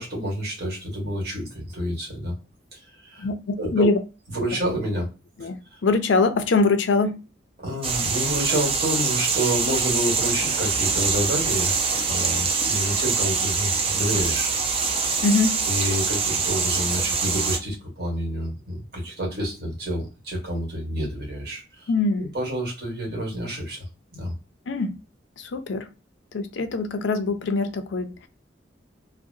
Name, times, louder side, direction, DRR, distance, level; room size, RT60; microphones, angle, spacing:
voice 1, 0.0-2.3 2.7-3.3 3.6-3.9 4.3-5.1 5.7-5.8 7.6-11.8 12.1-14.5 15.7-21.9 22.2-23.8 24.1-24.3, equal, 60° right, 1.5 m, -29 dB
voice 2, 3.2-4.0 5.4-7.2 15.2-15.6 21.9-22.3 24.7-24.9 25.4-25.9 26.3-28.3, left 3 dB, 80° left, 0.5 m, -23 dB
sound 1, 7.8-17.6, right 5 dB, 30° right, 0.5 m, -24 dB
2.7 x 2.1 x 2.5 m
head